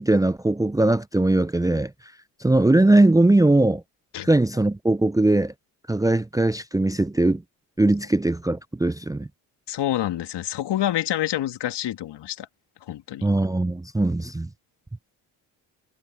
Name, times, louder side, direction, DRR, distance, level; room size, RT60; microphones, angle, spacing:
voice 1, 0.0-1.9 2.4-3.8 4.2-5.5 5.9-7.4 7.8-9.3 13.2-14.5, right 2 dB, 10° right, 0.7 m, -20 dB
voice 2, 9.7-12.5 12.9-13.3, left 12 dB, 65° left, 2.6 m, -27 dB
hypercardioid pair, 50°, 45 cm